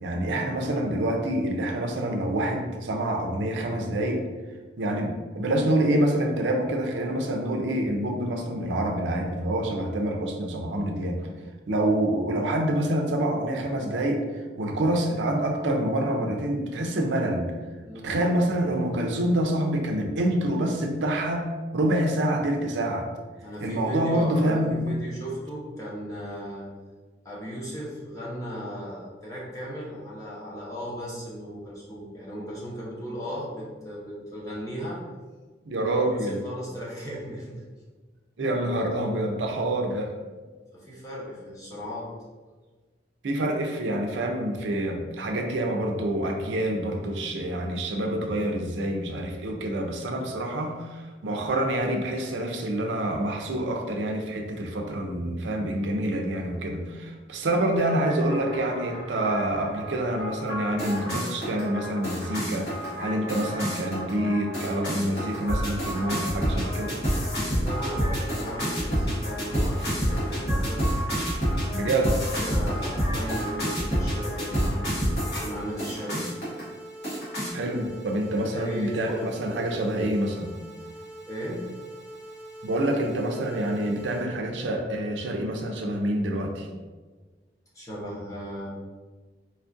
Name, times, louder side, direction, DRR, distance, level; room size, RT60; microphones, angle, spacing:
voice 1, 0.0-4.2 4.8-11.2 11.7-17.5 18.0-21.5 21.7-23.1 23.6-24.9 35.7-36.4 38.4-40.1 43.2-62.7 63.0-66.9 71.7-72.2 77.5-80.6 82.6-86.7, right 1 dB, 85° right, 3 dB, 0.5 m, -27 dB
voice 2, 23.4-26.7 27.2-35.0 36.0-37.6 40.7-42.1 67.6-70.9 72.3-76.2 78.3-79.9 80.8-81.6 87.7-88.7, equal, 20° left, -6 dB, 0.8 m, -36 dB
sound 1, 57.8-75.5 75.8-76.6 77.0-77.5, equal, 65° left, 1.3 m, -29 dB
sound 2, 75.2-84.2, right 1 dB, 5° right, 0.4 m, -43 dB
4.3 x 2.4 x 2.5 m, 1.3 s
head